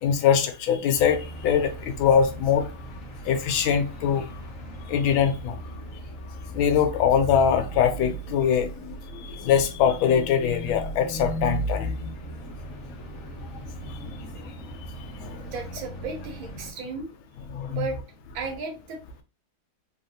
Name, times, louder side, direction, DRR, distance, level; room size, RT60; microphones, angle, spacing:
voice 1, 0.0-2.7 3.2-4.2 4.9-5.6 6.5-12.1 13.8-14.3 15.1-15.4 17.5-17.9, left 7 dB, 75° left, 1.3 m, -23 dB
sound 1, 0.9-16.7, right 2 dB, 55° left, 0.8 m, -38 dB
voice 2, 15.4-17.1 17.7-18.0 18.3-19.2, right 4 dB, 75° right, 1.6 m, -34 dB
3.4 x 2.5 x 2.7 m
omnidirectional pair, 2.3 m